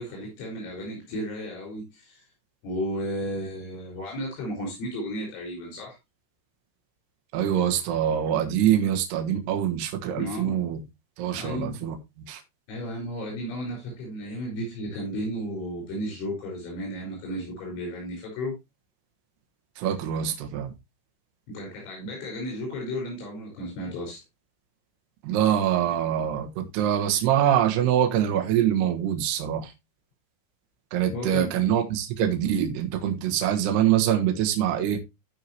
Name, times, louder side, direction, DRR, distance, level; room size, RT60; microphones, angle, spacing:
voice 1, 0.0-2.3 2.6-6.0 10.2-10.7 11.3-11.8 12.7-18.6 21.5-24.2 31.1-31.7, equal, 75° left, 7.6 m, -34 dB
voice 2, 7.3-10.8 11.2-12.0 12.3-12.4 19.8-20.7 25.2-29.7 30.9-35.0, right 10 dB, 65° right, 3.0 m, -24 dB
15.0 x 5.7 x 2.9 m
omnidirectional pair, 5.7 m